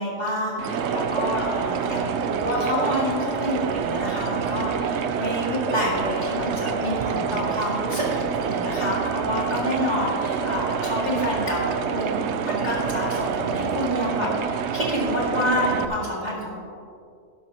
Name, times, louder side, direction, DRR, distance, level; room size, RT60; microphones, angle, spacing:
voice 1, 0.0-16.6, left 1 dB, 30° left, -4 dB, 2.4 m, -28 dB
sound 1, 0.6-15.9, right 6 dB, 65° right, 0.8 m, -27 dB
12.0 x 11.0 x 2.9 m, 2.4 s
omnidirectional pair, 1.5 m